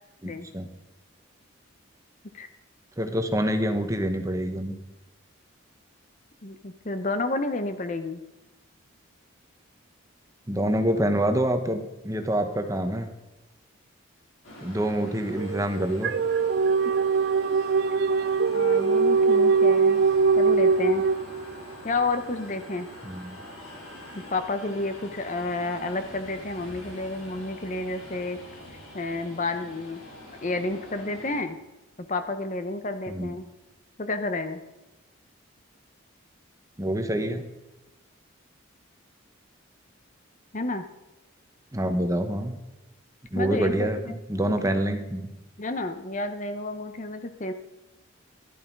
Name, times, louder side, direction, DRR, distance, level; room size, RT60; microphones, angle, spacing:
voice 1, 0.2-0.7 3.0-4.7 10.5-13.1 14.6-16.1 23.0-23.4 33.1-33.4 36.8-37.4 41.7-42.6 43.3-45.3, right 1 dB, 15° right, 6 dB, 1.0 m, -26 dB
voice 2, 6.4-8.2 18.5-20.0 20.4-21.0 21.8-22.9 24.3-28.4 28.9-30.0 30.4-31.6 32.0-33.5 34.0-34.6 40.5-40.8 43.3-44.2 44.6-44.8 45.6-47.5, left 2 dB, 35° left, 9 dB, 0.8 m, -30 dB
sound 1, 14.4-31.4, left 1 dB, 70° left, 4.4 m, -44 dB
sound 2, 15.4-21.7, right 4 dB, 50° right, 0.3 m, -22 dB
15.0 x 11.0 x 4.6 m, 1.0 s
head